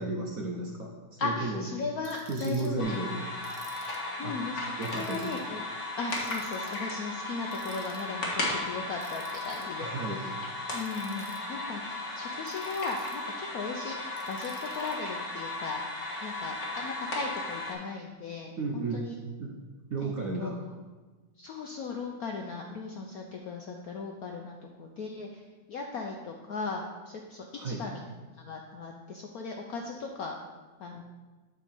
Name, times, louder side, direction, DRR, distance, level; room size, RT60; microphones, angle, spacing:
voice 1, 0.0-1.6 2.0-3.2 4.2-4.4 4.8-5.3 9.8-10.2 18.6-19.1 19.4-19.6 19.9-20.6 27.5-27.8, right 2 dB, 60° right, 0 dB, 0.9 m, -33 dB
voice 2, 1.2-3.0 4.2-5.6 6.0-10.4 10.7-14.0 14.3-15.8 16.2-19.1 20.0-20.7 21.4-25.4 25.7-28.0 28.4-30.3 30.8-31.0, left 4 dB, 70° left, 1 dB, 0.8 m, -37 dB
Ratchet pawl, 2.0-2.7 3.4-4.1 4.8-5.4 6.1-6.8 7.5-8.0 9.0-9.6 10.7-11.4 12.4-13.3 14.2-14.9, right 2 dB, 30° right, 0.7 m, -52 dB
sound 1, 2.8-17.7, left 2 dB, 40° left, 1.6 m, -36 dB
8.6 x 3.8 x 6.8 m, 1.3 s
omnidirectional pair, 2.2 m